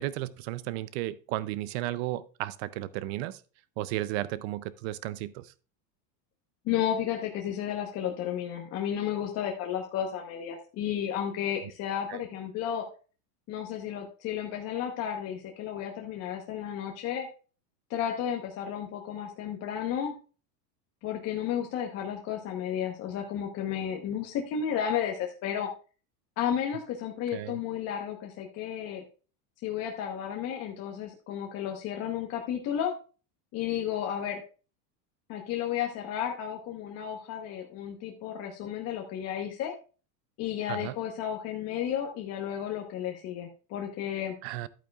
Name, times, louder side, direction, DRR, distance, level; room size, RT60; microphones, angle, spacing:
voice 1, 0.0-3.4 3.8-5.5 12.1-12.2 27.3-27.6 40.7-40.9 44.4-44.7, right 15 dB, 45° right, 17 dB, 0.5 m, -34 dB
voice 2, 6.6-12.8 13.5-17.3 17.9-20.1 21.0-25.7 26.4-29.0 29.6-32.9 33.5-34.4 35.3-39.7 40.4-44.3, left 9 dB, 30° left, 2 dB, 1.0 m, -33 dB
11.5 x 8.7 x 2.3 m, 0.36 s
supercardioid pair, 160°, 49 cm